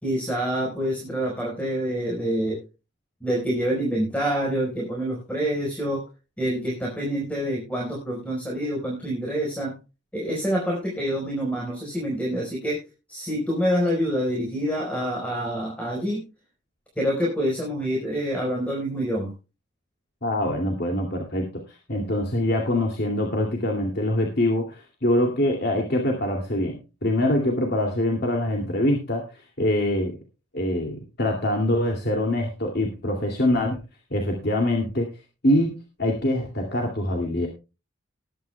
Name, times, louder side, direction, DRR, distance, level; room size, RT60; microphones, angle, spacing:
voice 1, 0.0-2.6 3.2-6.0 6.4-9.8 10.1-12.8 13.1-16.2 17.0-19.3, equal, 5° left, -2 dB, 4.5 m, -26 dB
voice 2, 20.2-30.2 30.5-33.8 34.1-35.1 35.4-37.5, left 1 dB, 50° left, 2 dB, 2.5 m, -24 dB
20.0 x 10.0 x 2.3 m, 0.30 s
head